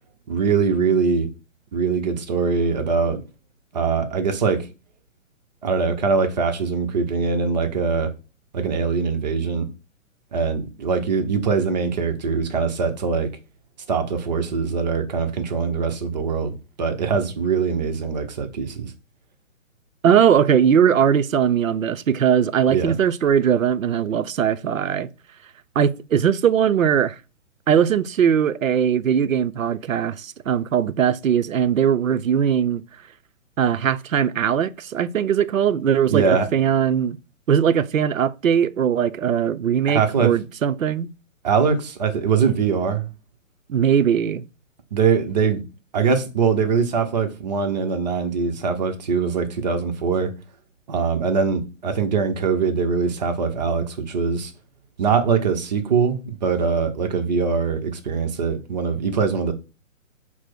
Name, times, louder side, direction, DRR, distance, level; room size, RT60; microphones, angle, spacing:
voice 1, 0.3-1.3 1.7-3.2 3.7-4.7 5.6-8.1 8.5-9.7 10.3-13.3 13.9-18.9 22.7-22.9 36.1-36.5 39.9-40.3 41.4-43.1 44.9-45.6 45.9-50.3 50.9-54.5 55.0-59.5, right 5 dB, 35° right, 0.7 m, -22 dB
voice 2, 20.0-25.1 25.8-27.2 27.7-32.8 33.6-37.2 37.5-41.1 43.7-44.5, right 8 dB, 80° right, 0.5 m, -20 dB
5.9 x 2.0 x 4.4 m
figure-of-eight pair, 130°, 39 cm